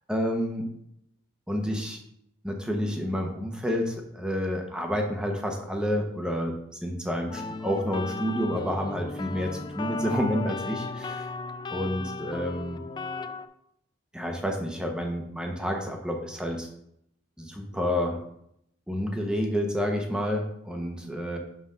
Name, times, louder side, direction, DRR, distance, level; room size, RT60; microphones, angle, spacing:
voice 1, 0.1-0.7 1.5-2.0 2.4-6.6 6.8-11.2 11.7-12.8 14.1-16.7 17.4-18.2 18.9-21.4, equal, 5° right, 2 dB, 0.9 m, -29 dB
sound 1, 7.3-13.5, left 3 dB, 25° left, 0.3 m, -36 dB
5.7 x 3.9 x 5.5 m, 0.75 s
head